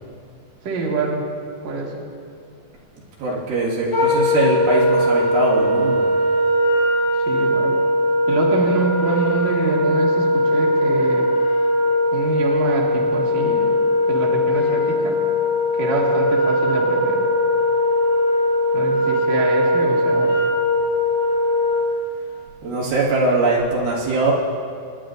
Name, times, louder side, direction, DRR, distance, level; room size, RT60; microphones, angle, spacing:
voice 1, 0.6-1.2 1.6-1.9 7.2-7.8 8.3-11.3 12.1-13.7 14.1-15.2 15.8-17.2 18.7-20.3, right 3 dB, 55° right, -2 dB, 2.7 m, -25 dB
voice 2, 3.2-6.1 22.6-24.3, right 2 dB, 85° right, -5 dB, 3.8 m, -21 dB
Wind instrument woodwind instrument, 3.9-22.0, left 1 dB, 35° left, 4.0 m, -19 dB
26.5 x 11.5 x 2.6 m, 2.3 s
omnidirectional pair, 4.2 m